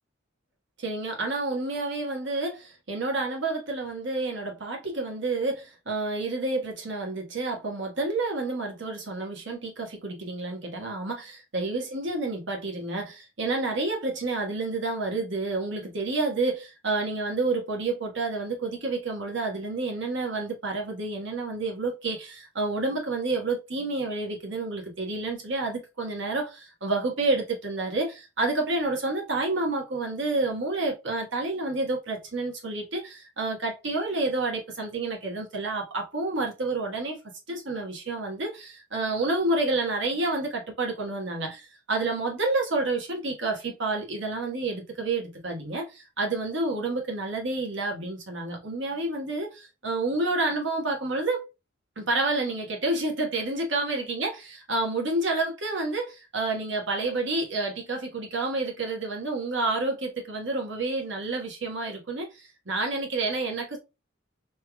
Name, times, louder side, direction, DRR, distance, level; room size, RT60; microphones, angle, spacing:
voice 1, 0.8-37.2 37.5-51.5 52.0-63.8, right 2 dB, 60° right, 1.4 m, -29 dB
3.4 x 3.3 x 2.2 m
head